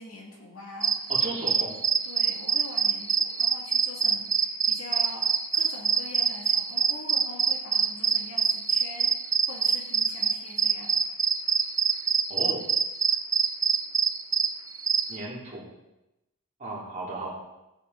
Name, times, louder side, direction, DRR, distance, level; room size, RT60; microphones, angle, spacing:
voice 1, 0.0-1.1 2.0-10.9, left 2 dB, 65° left, -1 dB, 2.8 m, -44 dB
sound 1, 0.8-15.2, right 6 dB, 15° right, 0.4 m, -25 dB
voice 2, 1.1-1.8 12.3-12.7 15.1-15.7 16.6-17.3, right 2 dB, 35° right, -4 dB, 3.1 m, -35 dB
14.5 x 9.6 x 4.1 m, 0.95 s
head